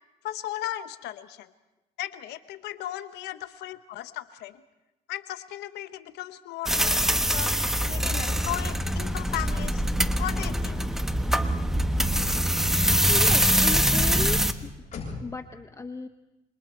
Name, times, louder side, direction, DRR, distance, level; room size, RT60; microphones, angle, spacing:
voice 1, 0.2-1.5 2.0-4.6 5.1-7.5 7.8-9.8 10.2-10.9, left 13 dB, 85° left, 11 dB, 1.0 m, -36 dB
sound 1, 6.7-14.5, equal, ahead, 1.1 m, -24 dB
Car / Slam, 9.1-15.5, left 4 dB, 45° left, 8.0 m, -48 dB
voice 2, 13.1-14.7 15.2-16.1, left 4 dB, 15° left, 8 dB, 0.8 m, -36 dB
28.0 x 26.0 x 4.4 m, 1.0 s
cardioid pair, 110°, 17 cm